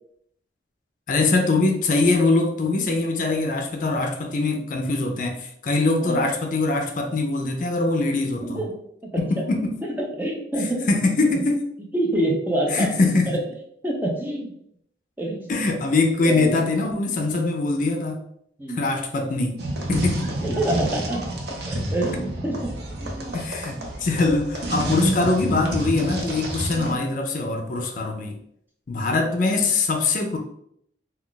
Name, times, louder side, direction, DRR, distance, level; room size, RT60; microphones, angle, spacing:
voice 1, 1.1-8.6 9.2-9.8 10.9-11.6 12.7-13.4 15.5-18.2 18.7-19.6 19.9-20.3 23.3-28.4 28.9-30.4, left 3 dB, 45° left, 3 dB, 0.4 m, -23 dB
voice 2, 8.4-8.8 9.1-9.2 9.8-10.9 11.3-11.4 11.9-12.9 13.3-13.4 13.8-14.5 15.2-15.5 16.2-16.6 18.6-18.8 20.4-21.2 21.7-22.7 23.0-23.4 23.7-23.9 25.0-25.2 26.7-27.0 28.9-29.1, right 1 dB, 10° right, -1 dB, 0.5 m, -26 dB
sound 1, 19.6-26.9, right 1 dB, 65° right, 0.6 m, -29 dB
2.4 x 2.3 x 3.7 m, 0.70 s
head